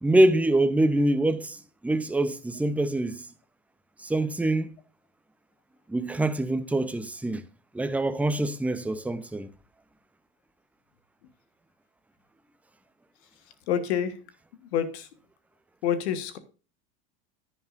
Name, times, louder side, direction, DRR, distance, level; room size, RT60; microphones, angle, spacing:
voice 1, 0.0-3.3 4.0-4.7 5.9-7.4 7.7-9.5, right 1 dB, 5° right, 0.7 m, -25 dB
voice 2, 13.7-14.1 14.7-15.1 15.8-16.4, left 9 dB, 80° left, 1.5 m, -27 dB
10.5 x 10.0 x 2.6 m
supercardioid pair, 100°, 33 cm